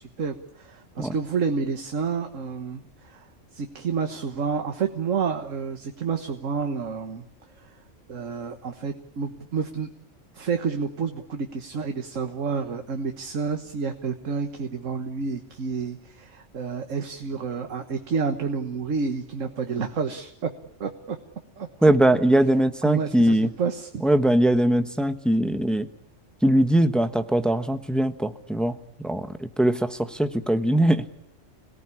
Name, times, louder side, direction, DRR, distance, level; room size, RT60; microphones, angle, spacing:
voice 1, 0.0-3.3 3.5-7.2 7.6-7.7 8.1-9.9 10.3-20.5 20.8-21.2 21.6-21.9 22.8-24.0, right 5 dB, 75° right, 6 dB, 1.8 m, -29 dB
voice 2, 21.8-23.5 24.0-25.9 26.4-31.0, right 1 dB, ahead, 8 dB, 1.1 m, -21 dB
27.0 x 18.5 x 9.8 m, 0.74 s
omnidirectional pair, 1.3 m